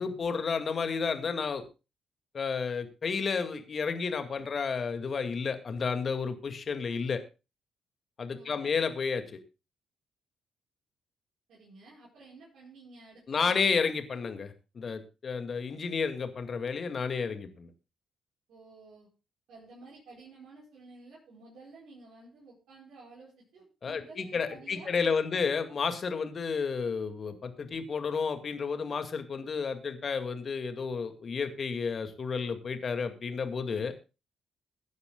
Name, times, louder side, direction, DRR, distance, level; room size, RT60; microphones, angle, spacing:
voice 1, 0.0-1.6 2.3-7.2 8.2-9.4 13.3-17.7 23.8-33.9, left 5 dB, 45° left, 8 dB, 2.1 m, -31 dB
voice 2, 8.3-8.7 11.5-13.6 18.5-19.1 19.5-25.4, right 3 dB, 65° right, -7 dB, 5.1 m, -52 dB
22.0 x 9.6 x 2.3 m, 0.29 s
hypercardioid pair, 45°, 0 cm